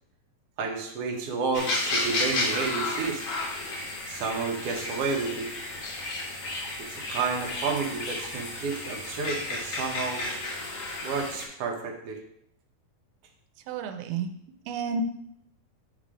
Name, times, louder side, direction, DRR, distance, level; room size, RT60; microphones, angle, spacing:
voice 1, 0.6-3.3 4.1-5.5 6.9-10.3 11.0-12.2, right 4 dB, 65° right, 0 dB, 1.6 m, -31 dB
sound 1, 1.5-11.4, left 2 dB, 55° left, 2.0 m, -32 dB
voice 2, 13.7-14.3 14.7-15.0, right 5 dB, 90° right, 6 dB, 2.4 m, -31 dB
8.6 x 3.3 x 5.0 m, 0.71 s
omnidirectional pair, 4.1 m